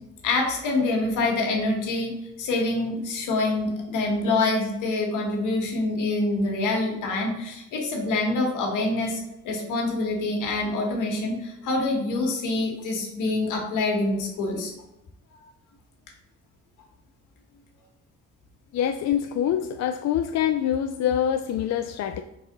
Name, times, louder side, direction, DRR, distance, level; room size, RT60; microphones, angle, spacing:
voice 1, 0.2-2.1 2.4-14.7, left 2 dB, 85° left, 0 dB, 1.6 m, -26 dB
voice 2, 18.7-22.2, left 10 dB, 60° left, 7 dB, 0.4 m, -25 dB
4.7 x 3.8 x 5.2 m, 0.87 s
cardioid pair, 90°, 30 cm